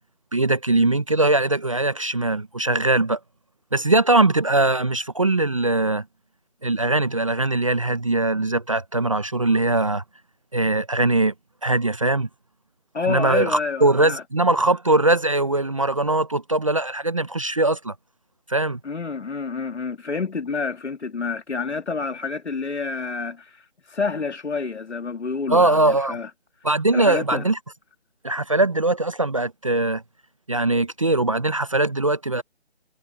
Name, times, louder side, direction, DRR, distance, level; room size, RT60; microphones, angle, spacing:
voice 1, 0.3-3.2 3.7-6.0 6.6-10.0 10.5-11.3 11.6-12.3 13.0-17.9 18.5-18.8 25.5-26.2 26.6-27.6 28.2-30.0 30.5-32.4, right 2 dB, 30° right, 0.8 m, -21 dB
voice 2, 12.9-14.2 18.8-26.3 26.9-27.5, left 4 dB, 85° left, 2.4 m, -28 dB
hypercardioid pair, 175°, 33 cm